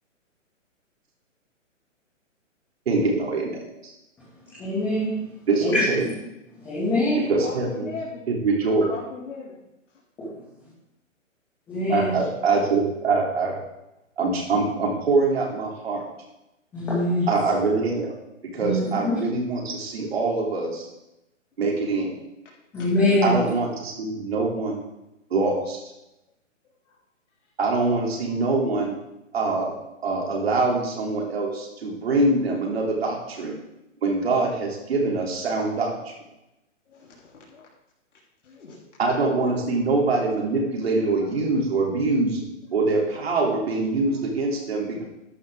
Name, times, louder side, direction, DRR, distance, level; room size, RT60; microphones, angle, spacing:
voice 1, 2.9-3.9 5.5-6.0 7.3-7.9 8.3-8.9 11.9-13.5 14.2-16.0 17.3-18.1 18.5-20.9 21.6-22.1 23.2-24.8 25.3-25.8 27.6-29.0 29.3-29.7 30.0-33.5 34.0-35.9 39.0-42.4 42.7-45.0, right 3 dB, 50° right, -1 dB, 3.5 m, -24 dB
voice 2, 4.6-5.1 5.6-6.1 6.6-7.2 11.7-12.1 16.7-17.3 18.6-19.2 22.7-23.3, left 1 dB, 5° left, -10 dB, 2.2 m, -23 dB
voice 3, 6.8-8.2 8.9-9.6 12.1-12.6 22.8-22.9 26.9-27.0 36.9-37.7 38.4-38.8 41.2-41.3 44.5-44.6, left 4 dB, 65° left, -5 dB, 3.2 m, -39 dB
13.0 x 11.0 x 3.8 m, 0.90 s
hypercardioid pair, 175°, 39 cm